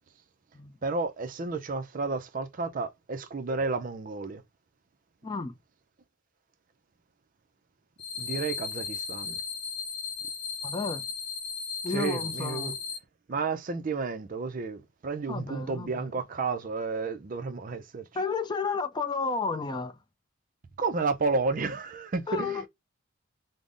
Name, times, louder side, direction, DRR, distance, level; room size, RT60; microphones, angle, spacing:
voice 1, 0.8-4.4 8.2-9.4 11.9-12.7 13.3-18.0 20.8-22.7, right 4 dB, 40° right, 0.4 m, -31 dB
voice 2, 5.2-5.6 10.6-11.1 11.8-12.8 15.3-16.0 18.1-20.0 22.3-22.7, left 4 dB, 20° left, 0.4 m, -32 dB
sound 1, 8.0-13.0, left 5 dB, 55° left, 0.8 m, -36 dB
5.2 x 2.0 x 2.5 m
head